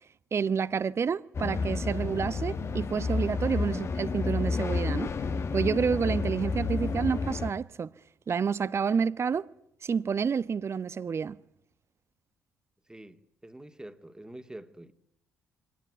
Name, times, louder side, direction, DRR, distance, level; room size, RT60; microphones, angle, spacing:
voice 1, 0.3-5.1 5.5-7.9 8.3-9.5 9.8-11.4, right 6 dB, 40° right, 1.1 m, -29 dB
sound 1, 1.3-7.5, left 4 dB, 40° left, 1.6 m, -30 dB
voice 2, 12.9-14.9, right 1 dB, 10° right, 2.4 m, -46 dB
25.0 x 19.5 x 9.5 m
hypercardioid pair, 50°, 7 cm